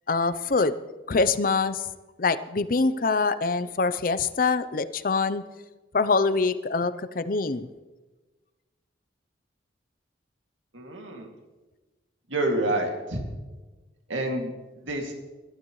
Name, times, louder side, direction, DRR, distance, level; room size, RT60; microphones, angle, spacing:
voice 1, 0.1-0.8 1.1-1.9 2.2-5.4 5.9-7.7, left 4 dB, 45° left, 13 dB, 0.6 m, -24 dB
voice 2, 10.7-11.3 12.3-13.2 14.1-15.1, right 1 dB, 90° right, 2 dB, 2.4 m, -28 dB
22.0 x 11.5 x 3.1 m, 1.2 s
head